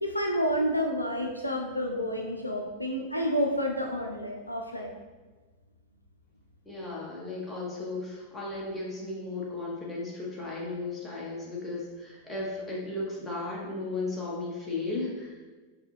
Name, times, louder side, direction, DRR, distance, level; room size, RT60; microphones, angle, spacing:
voice 1, 0.0-4.9, equal, 85° left, 2 dB, 0.4 m, -29 dB
voice 2, 6.6-15.4, left 2 dB, 15° left, -5 dB, 1.2 m, -35 dB
5.4 x 2.4 x 2.6 m, 1.3 s
figure-of-eight pair, 90°, 0 cm